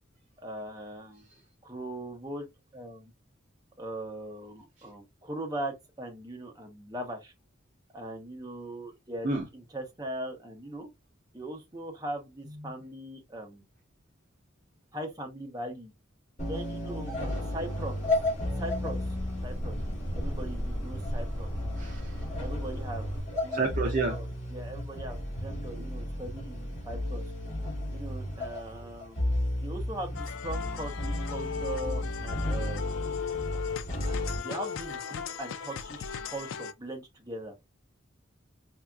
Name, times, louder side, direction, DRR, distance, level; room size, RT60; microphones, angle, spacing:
voice 1, 0.4-1.3 1.6-2.5 2.7-3.1 3.8-7.3 7.9-10.9 11.3-13.6 14.9-15.9 16.4-18.0 18.4-19.0 19.4-19.8 20.1-21.5 22.4-23.1 23.4-27.2 27.9-29.3 29.6-33.0 34.4-37.5, right 1 dB, 20° right, 1.0 m, -40 dB
sound 1, 16.4-34.4, left 1 dB, 35° left, 2.5 m, -33 dB
sound 2, 17.2-23.2, equal, 10° left, 1.3 m, -38 dB
voice 2, 21.8-22.2 23.5-24.2 28.7-28.9 33.5-33.6 33.9-34.4, right 3 dB, 40° right, 0.6 m, -32 dB
sound 3, 30.1-36.7, left 7 dB, 80° left, 0.4 m, -37 dB
4.7 x 2.8 x 2.4 m
head